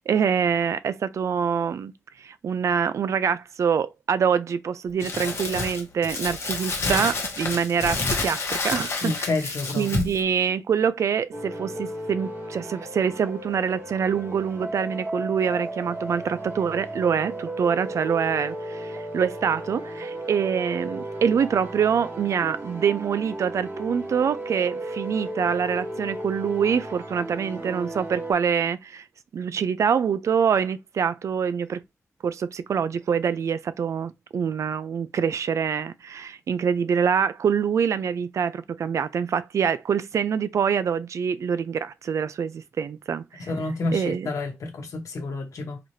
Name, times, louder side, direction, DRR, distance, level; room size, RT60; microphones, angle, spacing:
voice 1, 0.1-1.9 2.2-9.3 9.7-29.0 29.3-31.8 32.2-43.5 43.9-44.3, right 7 dB, 70° right, 0.4 m, -25 dB
Crumpling crinkling, 5.0-10.2, left 3 dB, 55° left, 1.0 m, -29 dB
voice 2, 9.0-10.0 43.5-45.8, left 2 dB, 85° left, 1.0 m, -29 dB
sound 1, 11.3-28.3, right 1 dB, 50° right, 2.0 m, -35 dB
4.0 x 2.8 x 3.0 m
wide cardioid pair, 165°, 5 cm